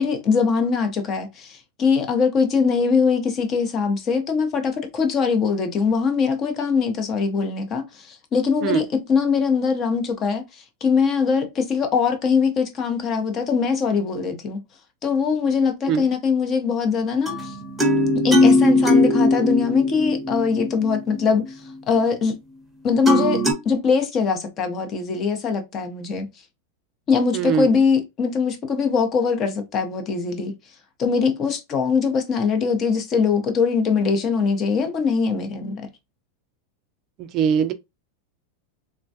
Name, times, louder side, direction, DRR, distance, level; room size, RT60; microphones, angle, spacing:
voice 1, 0.0-14.6 15.0-17.5 18.2-21.6 21.9-22.4 22.8-26.3 27.1-30.5 31.0-35.8, left 5 dB, 30° left, 0.7 m, -22 dB
sound 1, 17.3-21.2 23.1-23.5, left 1 dB, 5° right, 0.9 m, -19 dB
voice 2, 27.3-27.7 37.3-37.7, right 8 dB, 35° right, 0.4 m, -21 dB
3.3 x 2.2 x 2.6 m
supercardioid pair, 150°, 0 cm